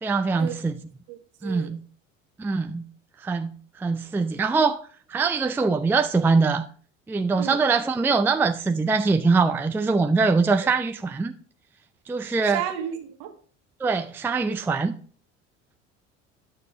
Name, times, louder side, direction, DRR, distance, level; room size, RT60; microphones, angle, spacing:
voice 1, 0.0-0.8 1.4-1.8 2.4-2.8 3.2-4.8 5.1-6.6 7.1-11.3 12.1-12.6 13.8-15.0, right 4 dB, 5° right, 0.4 m, -23 dB
voice 2, 1.1-1.7 7.4-7.6 10.6-10.7 12.5-13.3, right 10 dB, 55° right, 1.6 m, -33 dB
9.3 x 6.6 x 3.7 m
figure-of-eight pair, 65°, 38 cm